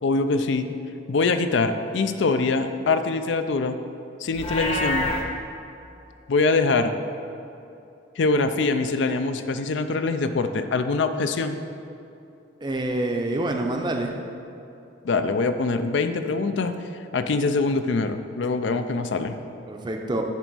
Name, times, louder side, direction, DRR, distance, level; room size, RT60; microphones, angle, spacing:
voice 1, 0.0-0.7 1.1-3.8 4.2-5.1 6.3-6.9 8.2-11.6 15.0-16.7 17.1-19.4, left 3 dB, 65° left, 9 dB, 0.4 m, -23 dB
Livestock farm animals working animals, 4.3-5.2, left 2 dB, 30° left, 0.9 m, -26 dB
voice 2, 12.6-14.1 19.7-20.2, right 1 dB, 25° right, 3 dB, 0.6 m, -26 dB
10.0 x 3.4 x 6.1 m, 2.8 s
head